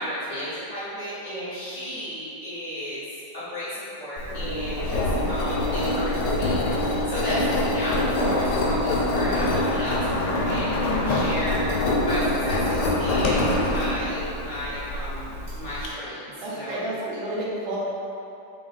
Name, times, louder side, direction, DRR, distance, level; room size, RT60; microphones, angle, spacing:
voice 1, 0.0-3.0 3.3-11.7 12.0-16.8, equal, 55° left, -10 dB, 0.8 m, -33 dB
Engine, 4.2-15.9, left 1 dB, 75° left, 1.3 m, -25 dB
voice 2, 16.4-17.8, right 1 dB, 85° right, -7 dB, 1.6 m, -30 dB
4.6 x 3.3 x 2.4 m, 2.7 s
omnidirectional pair, 2.1 m